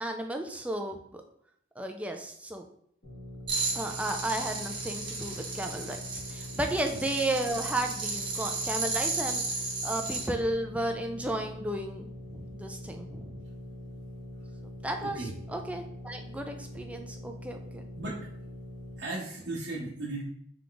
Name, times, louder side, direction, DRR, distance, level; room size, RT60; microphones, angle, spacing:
voice 1, 0.0-1.2 1.8-2.7 3.7-9.4 9.8-13.4 14.8-15.2 15.5-17.8, right 1 dB, 10° right, 4 dB, 0.4 m, -33 dB
sound 1, 3.0-19.0, left 1 dB, 70° left, 1.6 m, -44 dB
sound 2, 3.5-10.3, right 3 dB, 30° right, 1.0 m, -34 dB
voice 2, 15.0-15.3 18.0-18.3 19.0-20.2, right 2 dB, 65° right, -6 dB, 0.9 m, -36 dB
3.6 x 3.3 x 3.9 m, 0.67 s
head